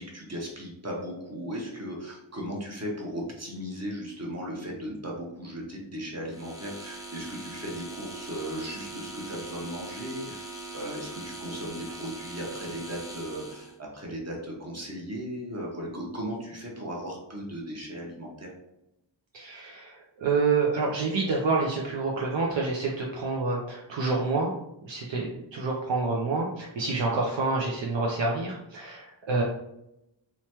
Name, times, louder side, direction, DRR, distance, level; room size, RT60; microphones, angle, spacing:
voice 1, 0.0-18.5, equal, 35° right, -2 dB, 0.8 m, -37 dB
sound 1, 6.3-13.8, right 2 dB, 10° right, 0.6 m, -41 dB
voice 2, 19.3-24.5 24.8-29.4, right 3 dB, 70° right, -2 dB, 0.5 m, -28 dB
2.9 x 2.2 x 2.8 m, 0.84 s
wide cardioid pair, 60°, 46 cm